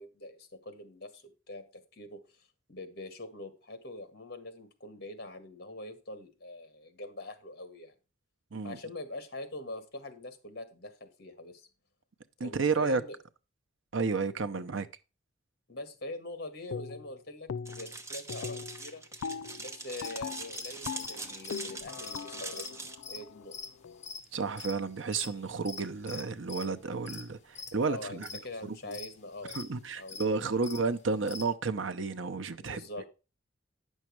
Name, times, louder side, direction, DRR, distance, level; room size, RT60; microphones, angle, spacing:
voice 1, 0.0-7.9 8.6-11.7 12.4-13.2 15.7-19.0 19.6-22.7 23.1-23.6 27.8-29.6 29.9-30.4 32.6-33.1, left 2 dB, 50° left, 1.7 m, -44 dB
voice 2, 12.4-13.0 13.9-14.9 24.3-28.3 28.6-29.0 29.5-32.8, right 4 dB, 75° right, 0.7 m, -32 dB
sound 1, 16.7-17.2 17.5-18.0 18.3-24.1, left 6 dB, 90° left, 0.4 m, -41 dB
sound 2, 17.7-23.0, right 3 dB, 15° right, 0.9 m, -42 dB
sound 3, 20.0-31.5, left 5 dB, 35° left, 1.2 m, -44 dB
9.7 x 6.4 x 4.5 m
head